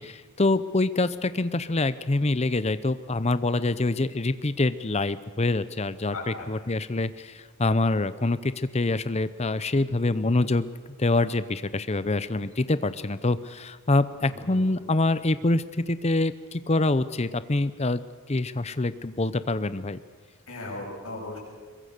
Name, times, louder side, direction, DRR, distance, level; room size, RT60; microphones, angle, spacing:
voice 1, 0.0-10.7 11.0-20.0, left 2 dB, 30° left, 14 dB, 0.7 m, -25 dB
voice 2, 6.1-6.5 14.2-14.7 20.5-21.4, left 2 dB, 75° left, -2 dB, 7.6 m, -37 dB
23.0 x 21.5 x 6.7 m, 1.5 s
head